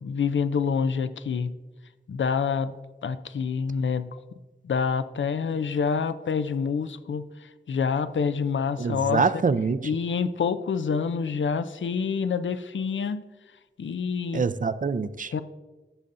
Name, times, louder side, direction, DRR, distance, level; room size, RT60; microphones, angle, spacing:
voice 1, 0.0-1.5 2.1-2.7 3.0-4.1 4.6-9.4 9.8-13.2 13.8-14.4 15.3-15.4, left 6 dB, 80° left, 0.5 m, -27 dB
voice 2, 8.8-9.8 14.3-15.3, right 5 dB, 45° right, 0.5 m, -25 dB
13.5 x 6.8 x 2.6 m
cardioid pair, 50°, 19 cm